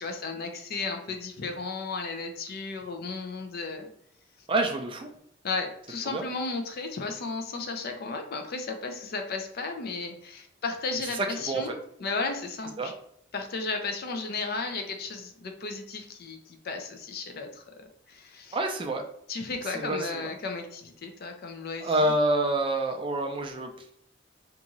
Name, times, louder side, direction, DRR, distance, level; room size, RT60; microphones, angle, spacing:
voice 1, 0.0-3.9 5.4-12.9 13.3-17.6 18.1-18.6 19.3-22.1, left 4 dB, 50° left, 5 dB, 0.4 m, -34 dB
voice 2, 4.5-5.1 6.1-6.2 11.2-11.7 12.8-12.9 18.5-19.0 19.7-20.3 21.8-23.7, right 1 dB, 25° right, 4 dB, 0.3 m, -27 dB
2.6 x 2.3 x 2.9 m, 0.68 s
head